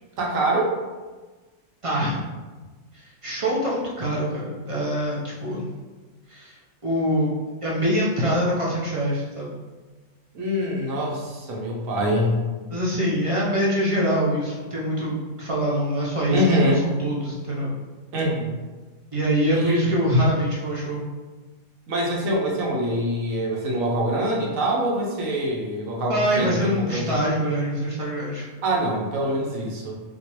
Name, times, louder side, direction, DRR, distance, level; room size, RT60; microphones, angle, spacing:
voice 1, 0.2-0.7 10.3-12.4 16.3-16.8 18.1-18.5 19.5-19.8 21.9-27.2 28.6-29.9, equal, 70° right, -2 dB, 1.2 m, -24 dB
voice 2, 1.8-2.2 2.9-5.7 6.3-6.6 6.8-7.3 7.6-9.6 12.7-17.7 19.1-21.0 26.1-28.5, equal, 50° right, -5 dB, 0.4 m, -24 dB
4.3 x 2.4 x 3.0 m, 1.3 s
omnidirectional pair, 1.5 m